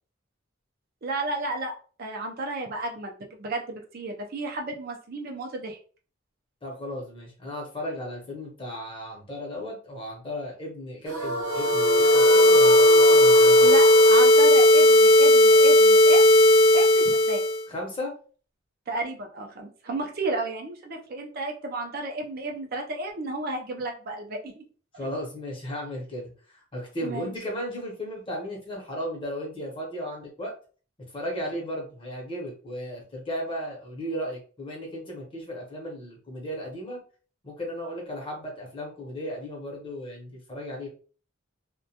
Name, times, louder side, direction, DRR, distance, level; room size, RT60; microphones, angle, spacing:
voice 1, 1.0-1.7 2.0-3.1 3.4-5.8 13.6-16.2 16.7-17.4 18.9-24.6 27.0-27.3, right 2 dB, 50° right, 2 dB, 0.4 m, -32 dB
voice 2, 6.6-13.7 17.7-18.1 24.9-30.5 31.1-37.0 37.4-40.9, equal, 25° left, -1 dB, 0.8 m, -35 dB
sound 1, 11.1-16.3, right 1 dB, 85° right, 0.8 m, -31 dB
sound 2, 11.5-17.6, left 1 dB, 85° left, 0.3 m, -16 dB
2.2 x 2.1 x 2.7 m, 0.40 s
head